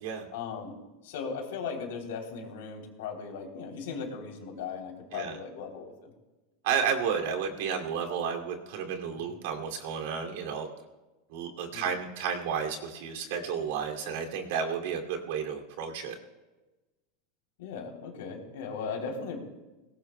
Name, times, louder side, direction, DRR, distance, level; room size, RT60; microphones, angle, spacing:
voice 1, 0.3-0.7 1.0-6.1 9.2-9.3 11.7-11.9 17.6-19.4, left 5 dB, 85° left, 1 dB, 3.2 m, -37 dB
voice 2, 6.6-10.7 11.3-16.2, right 7 dB, 75° right, 3 dB, 2.5 m, -32 dB
22.0 x 18.5 x 2.2 m, 1.1 s
supercardioid pair, 135°, 0 cm